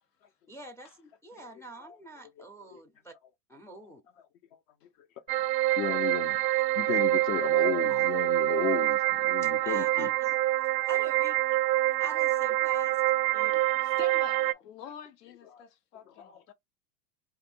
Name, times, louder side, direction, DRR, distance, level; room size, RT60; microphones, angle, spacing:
voice 1, 0.5-3.1 3.5-4.0 7.9-8.0 9.4-10.3 10.7-11.4 11.8-13.0 13.3-13.6 16.0-16.1, right 1 dB, 5° left, 0.4 m, -46 dB
sound 1, 5.3-14.5, right 16 dB, 80° right, 0.5 m, -26 dB
voice 2, 5.8-6.4 6.8-10.1 15.5-15.6 15.9-16.5, left 9 dB, 55° left, 0.8 m, -34 dB
voice 3, 13.5-16.5, left 7 dB, 75° left, 1.1 m, -47 dB
2.6 x 2.6 x 4.3 m
hypercardioid pair, 100°, 48 cm